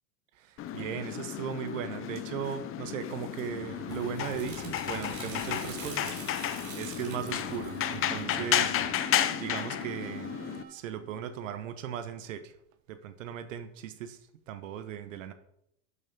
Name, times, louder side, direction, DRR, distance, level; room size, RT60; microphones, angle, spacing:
voice 1, 0.3-6.2 6.8-8.8 9.4-10.4 10.7-12.5 12.9-14.2 14.5-15.3, right 9 dB, 85° right, 10 dB, 1.1 m, -37 dB
sound 1, 0.6-10.6, left 11 dB, 35° left, 0.8 m, -33 dB
sound 2, 3.5-8.9, right 6 dB, 35° right, 5.1 m, -45 dB
sound 3, 7.0-12.1, right 8 dB, 55° right, 2.0 m, -47 dB
12.5 x 5.8 x 5.3 m, 0.74 s
supercardioid pair, 115°, 37 cm